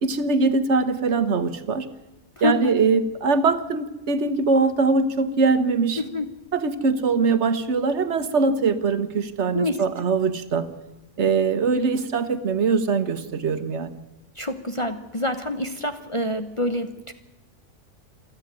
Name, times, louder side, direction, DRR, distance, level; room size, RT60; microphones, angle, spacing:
voice 1, 0.0-1.9 2.4-6.0 6.5-10.7 11.2-13.9, right 4 dB, 65° right, 11 dB, 1.6 m, -22 dB
voice 2, 2.4-2.8 6.0-6.3 9.5-9.8 14.4-17.1, left 2 dB, 25° left, 7 dB, 1.0 m, -27 dB
27.5 x 9.8 x 9.7 m, 1.0 s
omnidirectional pair, 1.3 m